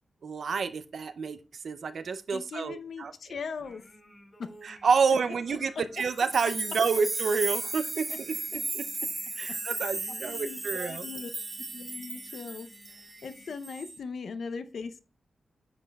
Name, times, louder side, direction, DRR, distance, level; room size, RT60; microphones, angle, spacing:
voice 1, 0.2-1.4 1.6-3.4 4.6-8.8 9.4-11.1, right 5 dB, 70° right, 0.5 m, -29 dB
voice 2, 2.3-3.9 4.4-4.5 5.5-5.6 8.1-8.2 9.5-9.6 10.2-11.3 11.7-15.0, left 5 dB, 75° left, 0.7 m, -39 dB
Singing, 3.5-13.5, equal, 30° left, 1.4 m, -56 dB
sound 1, 6.0-13.3 13.6-14.0, right 2 dB, 30° right, 1.1 m, -36 dB
9.6 x 5.3 x 2.3 m
cardioid pair, 70°, 0 cm